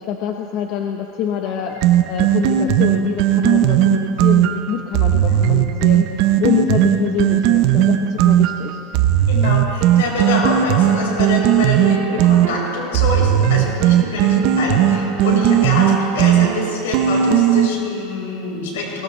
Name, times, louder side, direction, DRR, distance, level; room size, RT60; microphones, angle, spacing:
voice 1, 0.0-8.8, left 8 dB, 45° left, 3 dB, 1.0 m, -25 dB
sound 1, 1.8-17.7, right 11 dB, 55° right, 0.8 m, -16 dB
voice 2, 9.3-19.0, left 3 dB, 90° left, -2 dB, 4.9 m, -25 dB
22.0 x 19.0 x 3.3 m, 2.8 s
supercardioid pair, 145°, 0 cm